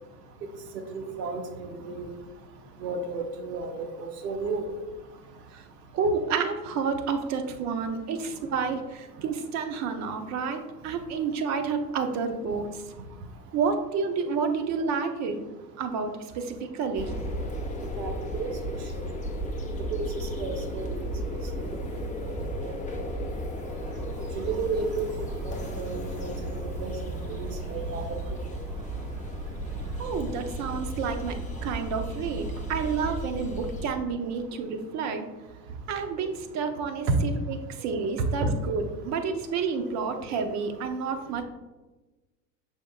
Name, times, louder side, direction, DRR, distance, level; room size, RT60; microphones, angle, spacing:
voice 1, 0.9-2.1 2.8-3.7 4.0-4.6 18.0-18.5 18.9-19.0 19.9-21.1 21.6-21.7 22.6-22.7 24.3-28.2, right 4 dB, 70° right, 4 dB, 0.9 m, -33 dB
voice 2, 5.9-12.8 13.5-15.4 15.8-17.1 30.0-35.3 35.9-41.4, right 5 dB, 35° right, 7 dB, 0.6 m, -30 dB
sound 1, 16.9-33.9, equal, 15° left, 0.5 m, -34 dB
6.2 x 3.5 x 2.3 m, 1.1 s
hypercardioid pair, 80°, 50 cm